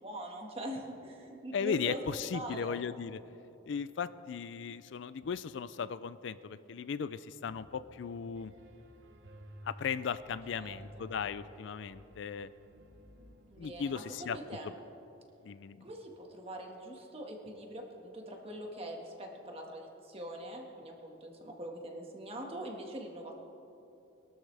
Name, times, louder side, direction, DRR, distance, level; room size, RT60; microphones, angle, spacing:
voice 1, 0.0-2.0 2.3-2.8 10.5-11.1 13.5-14.7 15.8-23.4, right 1 dB, 30° right, 1 dB, 1.7 m, -43 dB
voice 2, 1.5-3.2 3.7-8.5 9.6-12.5 13.6-14.4 15.4-15.8, left 6 dB, 65° left, 15 dB, 0.4 m, -37 dB
Piano, 7.5-14.5, equal, 70° right, 0.9 m, -55 dB
22.0 x 12.5 x 3.4 m, 3.0 s
head